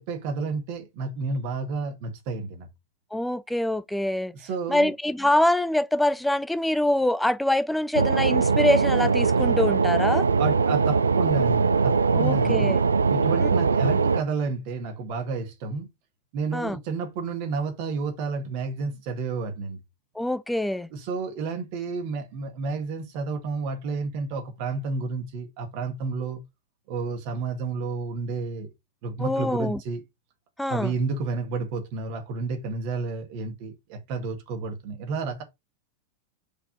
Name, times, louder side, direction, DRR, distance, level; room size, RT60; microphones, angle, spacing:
voice 1, 0.0-2.7 4.3-4.9 10.4-12.8 13.1-15.9 16.3-19.8 20.9-26.4 26.9-28.7 29.0-30.0 30.7-35.4, right 4 dB, 45° right, 1.7 m, -31 dB
voice 2, 3.1-4.3 4.7-10.2 12.1-12.8 13.4-13.5 16.5-16.8 20.2-20.9 29.2-29.8 30.6-30.9, left 1 dB, 5° left, 0.5 m, -24 dB
sound 1, 7.9-14.2, right 5 dB, 75° right, 0.4 m, -21 dB
5.2 x 4.2 x 4.4 m
figure-of-eight pair, 90°, 0 cm